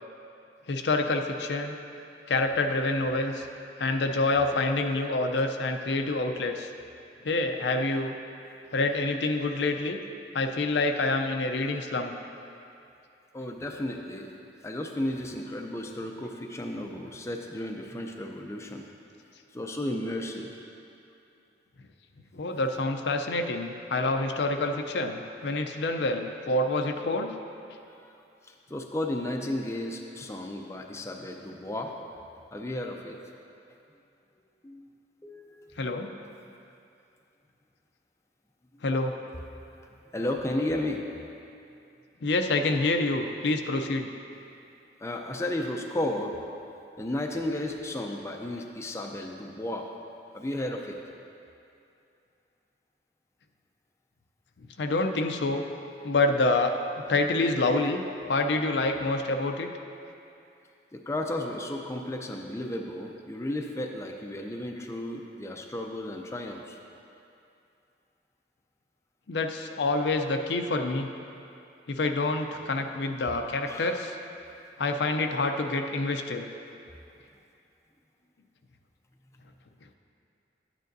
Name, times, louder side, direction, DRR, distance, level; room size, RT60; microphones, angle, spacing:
voice 1, 0.7-1.8 2.3-3.5 3.8-6.7 7.2-8.2 8.7-10.0 10.3-12.1 22.3-27.3 35.8-36.1 38.8-39.1 42.2-44.1 54.8-55.6 56.0-56.7 57.1-58.0 58.3-59.7 69.3-71.1 71.9-74.2 74.8-76.5, left 2 dB, 75° left, 5 dB, 0.5 m, -27 dB
voice 2, 13.3-14.3 14.6-18.8 19.5-20.5 28.0-28.1 28.4-31.9 32.5-33.2 34.6-34.9 35.2-35.7 40.1-41.0 45.0-46.4 47.0-49.9 50.3-51.0 60.9-66.8 73.7-74.0, left 1 dB, 15° left, 2 dB, 0.4 m, -33 dB
12.0 x 9.0 x 2.7 m, 2.6 s
head